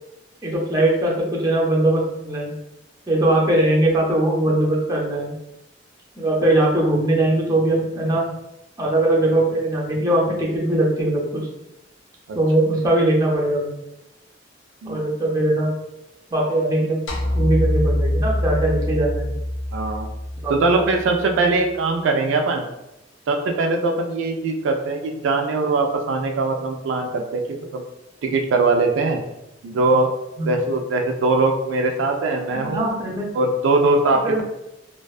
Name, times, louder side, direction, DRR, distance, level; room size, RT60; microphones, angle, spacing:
voice 1, 0.4-2.5 3.1-5.3 6.2-8.3 8.8-11.4 12.3-13.7 14.8-15.7 16.3-17.0 17.3-19.3 20.4-20.5 30.4-30.5 32.5-33.3 34.2-34.4, right 1 dB, 20° right, -3 dB, 0.5 m, -20 dB
sound 1, 17.1-21.5, left 1 dB, 90° left, 0.5 m, -24 dB
voice 2, 19.7-20.1 20.5-22.7 23.3-27.8 28.2-29.2 29.6-30.1 30.4-32.8 33.3-34.4, right 3 dB, 85° right, 3 dB, 0.3 m, -21 dB
2.5 x 2.2 x 2.3 m, 0.91 s
head